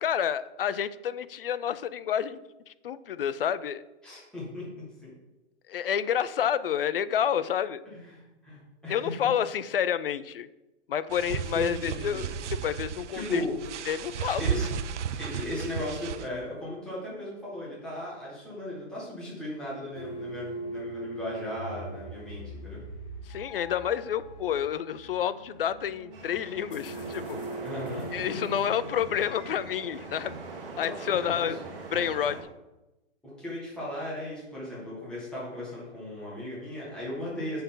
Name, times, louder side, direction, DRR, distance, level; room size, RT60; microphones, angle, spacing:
voice 1, 0.0-2.4 2.7-3.8 5.7-7.8 8.9-10.5 10.9-13.4 13.9-14.5 23.3-27.4 28.1-30.3 30.8-31.6 31.9-32.4, left 9 dB, 55° left, 15 dB, 0.5 m, -29 dB
voice 2, 4.0-4.6 5.0-5.1 7.9-9.0 11.3-12.2 13.1-13.5 14.4-14.7 15.2-22.8 27.6-28.5 30.8-31.6 33.2-37.6, left 1 dB, ahead, -8 dB, 1.9 m, -37 dB
sound 1, 11.1-16.3, right 8 dB, 80° right, 0.7 m, -34 dB
sound 2, 19.9-29.0, right 1 dB, 25° left, 1.1 m, -41 dB
sound 3, 26.1-32.4, right 3 dB, 50° right, 1.9 m, -42 dB
7.9 x 6.9 x 3.8 m, 1.0 s
hypercardioid pair, 175°, 35 cm